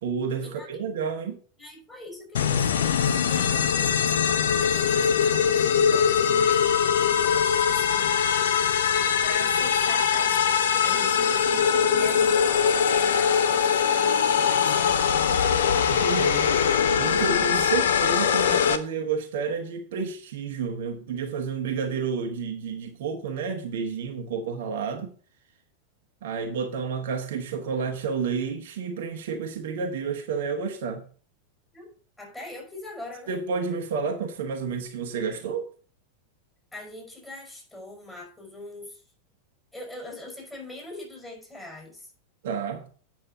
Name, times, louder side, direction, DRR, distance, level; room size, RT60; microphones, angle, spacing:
voice 1, 0.0-1.4 15.9-16.5 17.0-25.1 26.2-31.1 33.3-35.7 42.4-42.8, right 5 dB, 55° right, 1.2 m, -30 dB
voice 2, 1.6-8.2 9.2-12.5 12.9-15.1 31.7-31.9 32.2-33.3 36.7-39.0 39.7-42.1, left 2 dB, 10° left, 5.1 m, -42 dB
sound 1, 2.3-18.8, left 7 dB, 60° left, 0.8 m, -22 dB
8.8 x 6.1 x 5.6 m
figure-of-eight pair, 90°, 0 cm